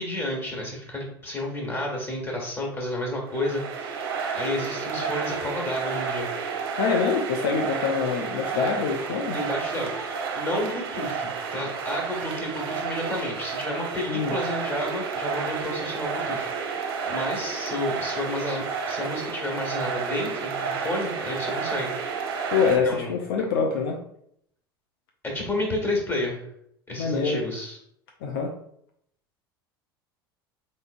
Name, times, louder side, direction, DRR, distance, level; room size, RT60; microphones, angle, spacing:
voice 1, 0.0-6.3 9.3-21.9 22.8-23.1 25.3-26.4 26.9-27.8, left 1 dB, 20° left, -1 dB, 1.6 m, -31 dB
sound 1, 3.3-22.8, right 5 dB, 65° right, 0.7 m, -31 dB
voice 2, 6.8-9.4 14.1-14.3 22.5-24.0 27.0-27.4 28.2-28.5, left 5 dB, 65° left, 2 dB, 0.5 m, -25 dB
3.9 x 3.6 x 2.5 m, 0.70 s
figure-of-eight pair, 75°, 13 cm